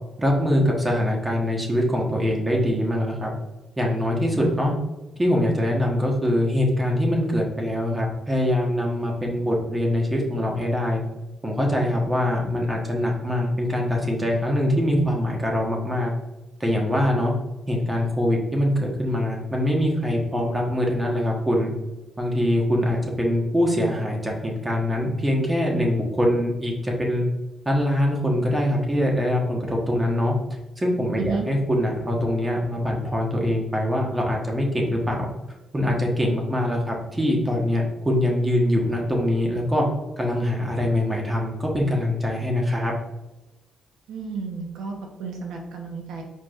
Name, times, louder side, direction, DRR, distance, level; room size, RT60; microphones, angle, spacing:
voice 1, 0.2-3.3 3.8-4.7 5.2-11.0 11.4-16.1 16.6-17.3 17.7-21.7 22.2-27.2 27.6-30.3 30.8-35.3 35.7-39.8 40.2-42.9, left 1 dB, 20° right, -1 dB, 1.2 m, -23 dB
voice 2, 44.1-46.2, right 5 dB, 85° right, 2 dB, 1.0 m, -32 dB
4.6 x 4.6 x 2.5 m, 1.0 s
cardioid pair, 85°, 0 cm